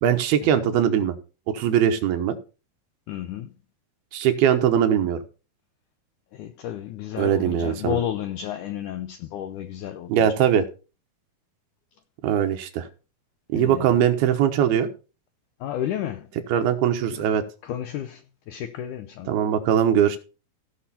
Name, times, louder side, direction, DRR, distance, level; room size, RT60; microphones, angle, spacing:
voice 1, 0.0-1.2 1.5-2.4 4.1-5.2 7.2-8.0 10.1-10.6 12.2-12.9 13.5-14.9 16.5-17.4 19.3-20.2, right 9 dB, 80° right, 3.0 m, -21 dB
voice 2, 3.1-3.5 6.3-10.3 13.5-14.0 15.6-16.3 17.1-17.2 17.6-19.4, left 10 dB, 85° left, 1.7 m, -32 dB
16.5 x 6.1 x 4.2 m
omnidirectional pair, 4.4 m